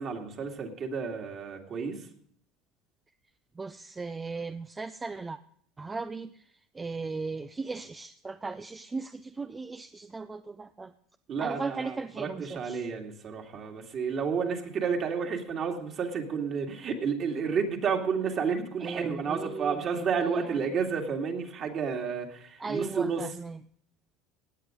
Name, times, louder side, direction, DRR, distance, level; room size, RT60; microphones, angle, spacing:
voice 1, 0.0-2.1 11.3-23.3, right 6 dB, 45° right, 2 dB, 2.5 m, -31 dB
voice 2, 3.6-5.4 5.8-6.5 6.7-10.9 11.4-12.9 18.8-20.6 22.6-23.6, right 4 dB, 15° right, 11 dB, 0.5 m, -37 dB
16.5 x 9.3 x 5.2 m, 0.65 s
supercardioid pair, 115°, 0 cm